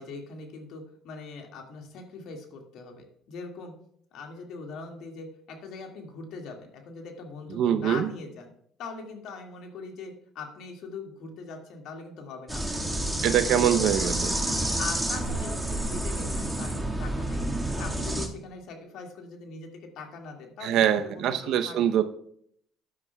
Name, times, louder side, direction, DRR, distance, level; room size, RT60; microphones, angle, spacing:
voice 1, 0.0-3.7 4.1-8.5 8.8-14.3 14.7-17.4 17.8-21.8, left 4 dB, 70° left, 3 dB, 2.0 m, -41 dB
voice 2, 7.5-8.1 13.2-14.3 20.6-22.0, right 10 dB, 65° right, 10 dB, 0.7 m, -24 dB
sound 1, 12.5-18.3, right 1 dB, 5° right, 1.8 m, -29 dB
13.0 x 9.7 x 2.3 m, 0.67 s
supercardioid pair, 80°, 0 cm